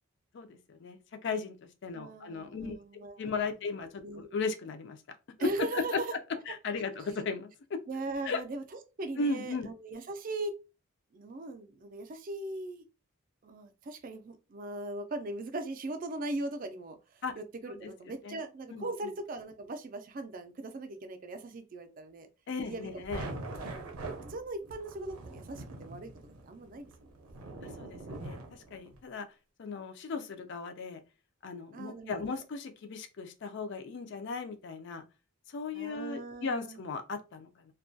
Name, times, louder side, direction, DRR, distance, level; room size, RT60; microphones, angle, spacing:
voice 1, 0.3-2.8 3.2-5.0 5.4-5.5 6.5-7.8 8.2-8.4 9.2-9.7 17.2-17.4 17.8-17.9 18.2-18.4 18.7-18.8 22.5-23.3 27.6-29.3 29.6-31.0 31.4-35.0 35.5-37.7, left 4 dB, 55° left, 0.4 m, -37 dB
voice 2, 1.9-3.6 4.0-4.4 5.4-6.1 7.9-8.6 9.0-10.5 11.1-12.8 13.4-22.3 22.6-23.7 24.3-26.9 27.2-28.1 31.7-32.3 35.7-36.8, right 2 dB, 40° right, 0.4 m, -39 dB
sound 1, 22.7-29.0, right 2 dB, 85° right, 0.6 m, -43 dB
2.2 x 2.2 x 2.6 m
head